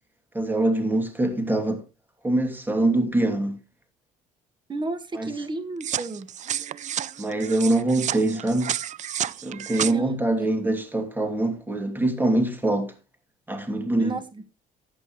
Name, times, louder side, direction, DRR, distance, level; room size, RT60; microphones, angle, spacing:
voice 1, 0.3-1.8 2.2-3.6 5.1-5.3 7.2-8.8 9.4-12.9 13.5-14.1, right 2 dB, 10° right, 2.8 m, -24 dB
voice 2, 4.7-6.3 9.8-10.5 14.0-14.4, right 3 dB, 25° right, 1.7 m, -33 dB
sound 1, 5.8-9.9, right 10 dB, 45° right, 0.5 m, -31 dB
14.0 x 9.0 x 3.2 m
cardioid pair, 110°, 17 cm